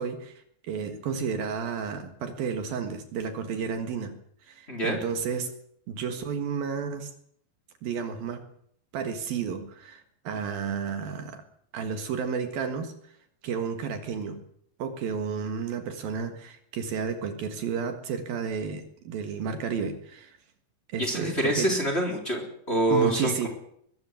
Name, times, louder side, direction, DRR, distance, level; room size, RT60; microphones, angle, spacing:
voice 1, 0.0-4.2 4.4-5.5 5.9-7.1 7.8-8.4 8.9-11.4 11.7-12.9 13.4-14.4 14.8-20.4 20.9-21.7 22.9-23.5, right 6 dB, 65° right, 7 dB, 3.3 m, -32 dB
voice 2, 21.0-23.5, right 1 dB, 15° left, 3 dB, 3.5 m, -26 dB
21.5 x 14.0 x 9.2 m, 0.69 s
omnidirectional pair, 4.7 m